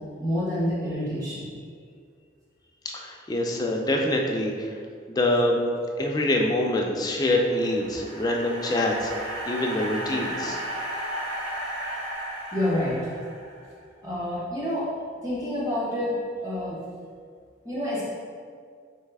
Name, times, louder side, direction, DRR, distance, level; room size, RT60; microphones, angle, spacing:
voice 1, 0.2-1.5 12.5-13.0 14.0-14.9 15.2-16.8 17.6-18.0, left 1 dB, 20° right, -9 dB, 1.0 m, -28 dB
voice 2, 2.8-4.8 5.1-5.6 6.0-9.1 9.5-10.6, left 1 dB, 20° left, 0 dB, 0.3 m, -25 dB
sound 1, 7.3-13.7, right 1 dB, 90° right, 0.8 m, -34 dB
4.0 x 3.2 x 3.4 m, 2.2 s
head